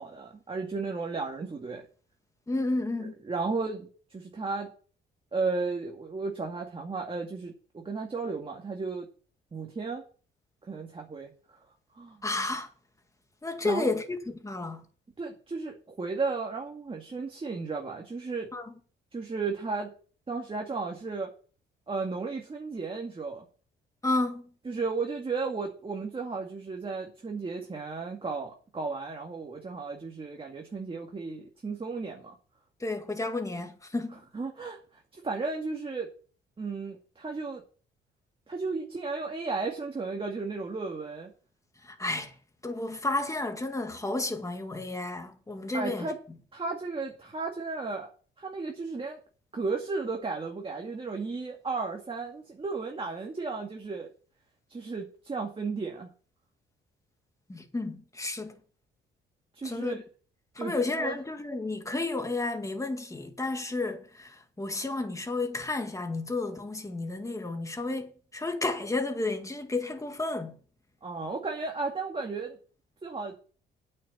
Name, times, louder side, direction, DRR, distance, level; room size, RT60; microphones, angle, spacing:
voice 1, 0.0-1.8 3.3-4.7 5.3-9.1 9.5-10.0 10.6-11.3 12.0-12.2 13.6-13.9 15.2-18.5 19.1-19.9 20.3-21.3 21.9-23.4 24.7-32.3 34.3-34.8 35.1-36.1 36.6-37.6 38.5-41.3 45.7-46.2 46.5-48.1 48.4-49.2 49.5-54.1 54.7-56.1 59.5-60.0 60.6-61.2 71.0-72.6 73.0-73.3, right 4 dB, 25° right, 2.3 m, -34 dB
voice 2, 2.5-3.1 12.2-12.7 13.4-14.8 18.5-18.7 24.0-24.4 32.8-34.2 41.8-42.4 42.6-46.1 57.5-58.6 59.6-60.0 60.6-70.6, left 2 dB, 15° left, 2.1 m, -32 dB
8.6 x 6.7 x 8.3 m
cardioid pair, 90°, 20 cm